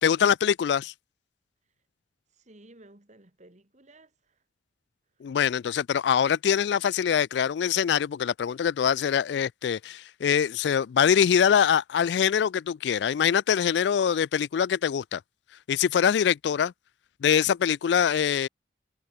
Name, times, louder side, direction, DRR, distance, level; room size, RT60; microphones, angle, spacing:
voice 1, 0.0-0.9 5.2-15.2 15.7-16.7 17.2-18.5, left 8 dB, 65° left, 0.3 m, -24 dB
voice 2, 2.3-4.4 5.2-5.3, right 2 dB, 40° right, 2.1 m, -55 dB
head